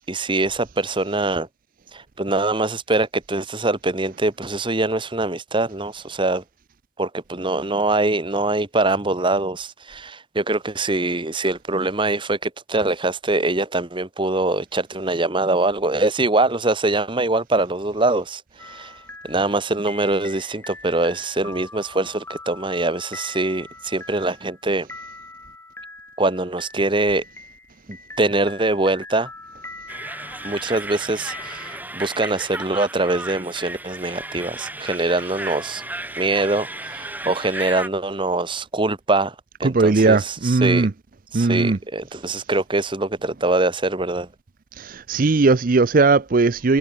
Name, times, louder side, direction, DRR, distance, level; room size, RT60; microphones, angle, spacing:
voice 1, 0.1-1.5 1.9-6.4 7.0-18.9 19.2-24.9 26.2-27.2 27.9-29.3 30.4-35.8 36.2-39.3 39.6-40.9 41.3-44.3, right 2 dB, 25° right, 1.3 m, -23 dB
sound 1, 18.6-31.8, left 2 dB, 15° left, 5.5 m, -42 dB
sound 2, 29.9-37.9, right 2 dB, 10° right, 3.6 m, -34 dB
voice 2, 39.6-40.9 41.3-41.8 44.8-46.8, right 3 dB, 45° right, 0.6 m, -18 dB
head